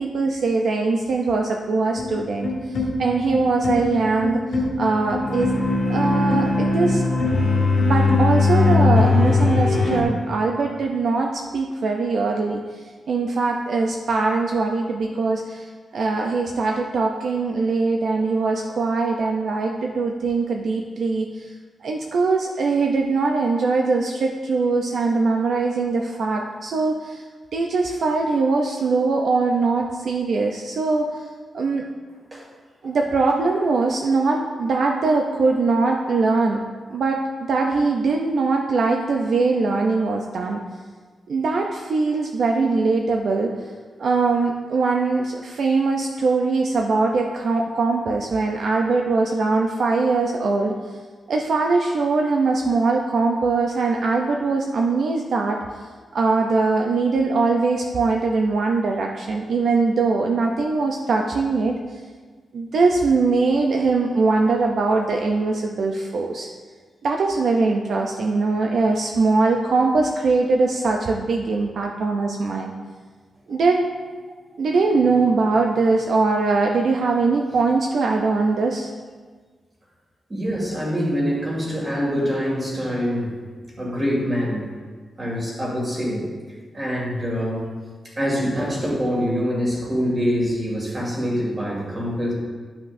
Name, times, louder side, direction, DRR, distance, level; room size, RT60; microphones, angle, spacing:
voice 1, 0.0-5.5 5.9-7.1 7.8-12.6 13.1-15.7 15.9-21.5 21.8-27.2 27.5-31.1 31.5-31.8 32.8-36.6 36.9-37.2 37.5-40.6 41.3-43.5 44.0-50.7 51.3-55.6 56.1-61.7 62.5-66.5 67.0-72.7 73.5-73.8 74.6-78.9, right 3 dB, 65° right, 1 dB, 0.5 m, -21 dB
sound 1, 2.0-10.0, left 3 dB, 60° left, 1.6 m, -20 dB
voice 2, 80.3-83.3 83.8-84.7 85.2-86.3 86.7-87.6 88.2-92.3, equal, 25° right, -4 dB, 2.2 m, -25 dB
12.0 x 5.8 x 2.6 m, 1.5 s
wide cardioid pair, 150°, 0 cm